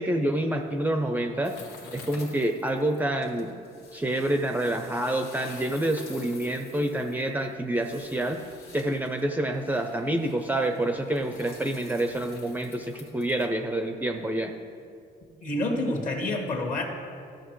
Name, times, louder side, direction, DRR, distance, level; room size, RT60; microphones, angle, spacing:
voice 1, 0.0-1.5 1.9-3.6 3.9-8.5 8.7-14.5, right 1 dB, 10° right, 4 dB, 0.5 m, -27 dB
sound 1, 1.4-13.4, left 4 dB, 85° left, 1.6 m, -49 dB
voice 2, 15.4-16.9, left 1 dB, 50° left, 2 dB, 1.6 m, -28 dB
14.0 x 6.5 x 3.1 m, 2.3 s
cardioid pair, 110°, 17 cm